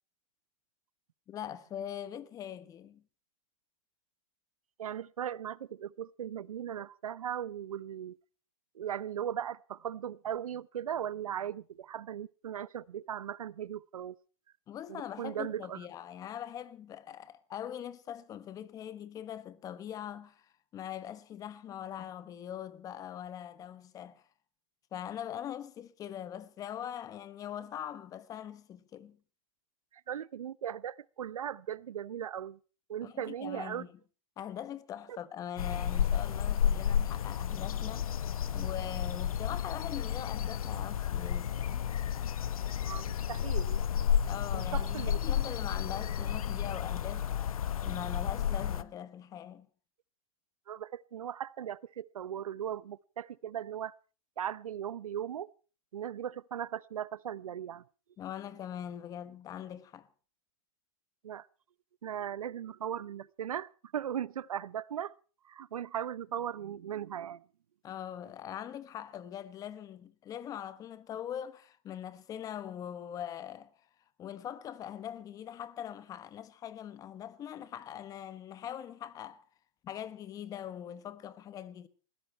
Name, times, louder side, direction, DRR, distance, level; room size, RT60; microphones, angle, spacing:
voice 1, 1.3-3.0 14.7-24.2 24.9-29.2 33.0-33.9 34.4-41.9 44.3-47.3 47.8-49.7 58.2-60.1 67.8-73.7 74.2-79.4 79.8-81.9, left 10 dB, 20° left, 1.2 m, -42 dB
voice 2, 4.8-8.2 8.7-14.2 14.9-15.8 30.1-32.6 32.9-33.9 42.8-43.8 44.5-45.2 50.7-53.9 54.4-55.5 55.9-57.8 61.2-61.5 62.0-65.1 65.5-67.4, right 9 dB, 90° right, 0.8 m, -38 dB
sound 1, 35.6-48.8, left 9 dB, 85° left, 1.1 m, -32 dB
20.5 x 16.0 x 4.4 m
hypercardioid pair, 145°, 18 cm